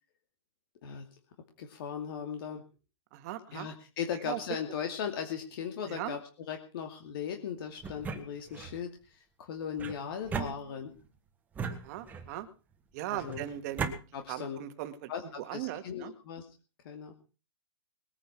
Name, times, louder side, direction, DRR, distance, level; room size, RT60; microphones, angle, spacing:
voice 1, 1.6-2.6 3.5-10.9 13.1-13.4 14.1-14.6 15.1-16.4 16.8-17.1, left 7 dB, 50° left, 4 dB, 2.7 m, -38 dB
voice 2, 3.1-3.7 4.3-4.4 5.9-6.2 11.7-12.5 12.9-14.0 14.3-15.1 15.4-16.1, right 14 dB, 35° right, 9 dB, 2.0 m, -38 dB
sound 1, 7.8-8.8 9.8-11.0 11.5-12.4 13.2-14.0, right 5 dB, 10° right, 1.5 m, -37 dB
21.0 x 9.8 x 6.0 m, 0.36 s
hypercardioid pair, 170°, 16 cm